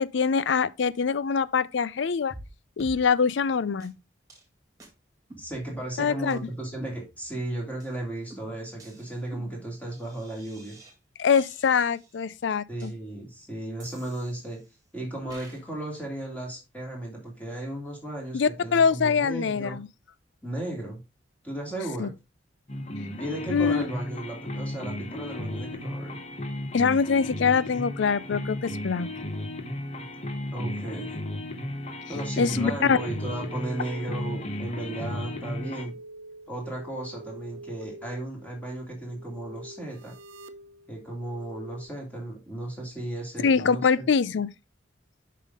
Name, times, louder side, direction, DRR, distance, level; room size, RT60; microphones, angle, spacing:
voice 1, 0.0-2.3 2.8-3.9 6.0-6.4 11.2-12.9 18.3-19.9 22.0-22.1 23.5-23.9 26.7-29.1 32.4-33.0 43.4-44.5, left 6 dB, 65° left, 0.4 m, -24 dB
sound 1, 2.3-2.5 2.8-3.0 3.3-3.4 3.8-3.9 4.3-4.4 4.8-4.9 5.3-5.9 6.3-6.4 6.8-7.4 7.8-7.9 8.3-10.9 11.3-12.2 12.8-12.9 13.8-14.8 15.3-15.6, right 2 dB, 20° right, 2.2 m, -49 dB
voice 2, 5.4-10.8 12.7-14.6 14.9-19.8 20.4-21.0 21.4-22.1 23.2-26.2 30.0-30.1 30.5-31.1 32.1-35.9 36.5-40.1 40.9-44.0, right 1 dB, 10° left, 2.8 m, -35 dB
sound 2, 22.7-35.9, left 1 dB, 35° left, 1.0 m, -34 dB
sound 3, 32.7-41.8, right 1 dB, 85° right, 0.8 m, -46 dB
7.3 x 5.7 x 3.6 m
head